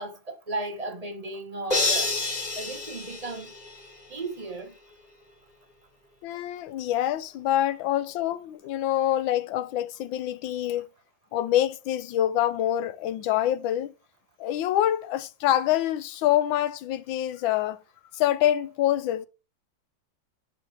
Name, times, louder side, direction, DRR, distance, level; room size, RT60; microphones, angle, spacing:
voice 1, 0.0-2.2 2.6-3.5 4.1-4.7, right 2 dB, 25° right, 0.8 m, -35 dB
sound 1, 1.7-4.0, left 3 dB, 20° left, 1.7 m, -28 dB
voice 2, 6.2-10.9 11.3-13.9 14.4-17.8 18.1-19.3, left 12 dB, 80° left, 1.3 m, -26 dB
10.5 x 3.5 x 4.8 m
omnidirectional pair, 2.2 m